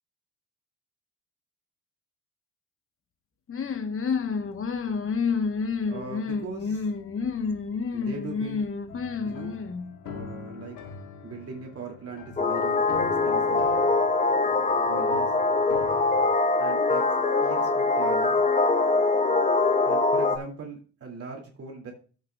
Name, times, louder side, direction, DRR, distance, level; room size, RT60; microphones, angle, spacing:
sound 1, 3.5-9.9, left 5 dB, 45° left, 1.2 m, -29 dB
voice 1, 5.9-6.9 7.9-8.7 9.2-9.6 10.0-10.8 11.2-12.8 13.2-13.7 14.8-15.3 16.6-17.0 17.4-18.4 19.8-21.9, right 4 dB, 50° right, 0 dB, 2.5 m, -40 dB
sound 2, 8.9-16.3, left 7 dB, 85° left, 1.6 m, -42 dB
sound 3, 12.4-20.4, left 3 dB, 25° left, 1.0 m, -23 dB
13.5 x 7.8 x 2.3 m, 0.40 s
cardioid pair, 90°, 30 cm